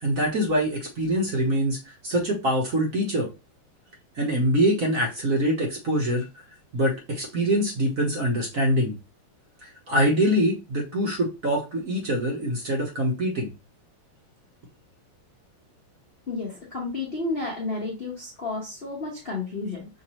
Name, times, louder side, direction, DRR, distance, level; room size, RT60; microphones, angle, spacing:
voice 1, 0.0-3.3 4.2-6.3 6.7-9.0 9.6-13.5, equal, 50° right, 0 dB, 1.2 m, -24 dB
voice 2, 16.3-19.9, left 3 dB, 40° left, -3 dB, 0.9 m, -31 dB
5.8 x 2.6 x 3.0 m, 0.27 s
omnidirectional pair, 2.4 m